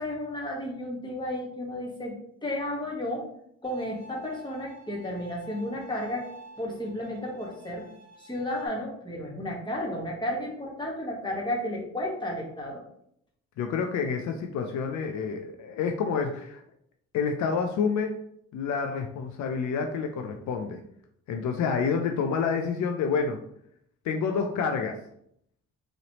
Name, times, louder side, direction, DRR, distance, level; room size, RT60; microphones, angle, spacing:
voice 1, 0.0-2.2 2.4-3.3 3.6-6.3 6.6-7.8 8.2-12.8, left 1 dB, 15° left, -2 dB, 1.4 m, -33 dB
Bowed string instrument, 3.6-8.7, right 1 dB, 60° right, 0.9 m, -49 dB
voice 2, 13.6-16.6 17.1-18.1 18.5-20.8 21.3-23.4 24.0-25.0, left 5 dB, 70° left, 4 dB, 0.5 m, -28 dB
3.9 x 3.2 x 2.9 m, 0.71 s
cardioid pair, 90°, 30 cm